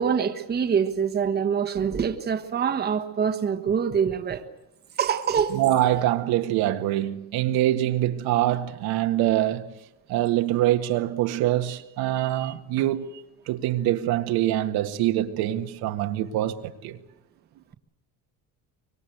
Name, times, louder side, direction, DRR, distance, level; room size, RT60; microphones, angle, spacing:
voice 1, 0.0-4.4 5.0-5.6 12.1-12.5, right 7 dB, 25° right, 1.4 m, -25 dB
voice 2, 5.5-9.7 10.1-13.1 13.5-17.0, right 13 dB, 75° right, 1.8 m, -24 dB
25.0 x 23.5 x 8.0 m
cardioid pair, 155°, 37 cm